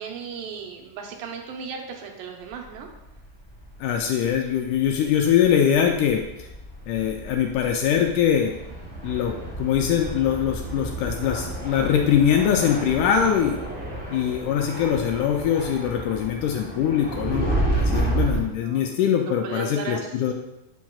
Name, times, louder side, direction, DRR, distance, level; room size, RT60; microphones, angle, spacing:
voice 1, 0.0-2.9 17.8-18.9 19.4-20.3, right 6 dB, 80° right, 2 dB, 2.5 m, -37 dB
sound 1, 2.6-4.0 4.3-4.4 4.7-18.4, right 1 dB, 30° left, 0.3 m, -31 dB
voice 2, 3.8-6.5 6.9-8.5 9.0-13.6 14.1-20.3, left 8 dB, 80° left, 2 dB, 1.8 m, -22 dB
7.0 x 5.9 x 2.3 m, 0.92 s
omnidirectional pair, 4.0 m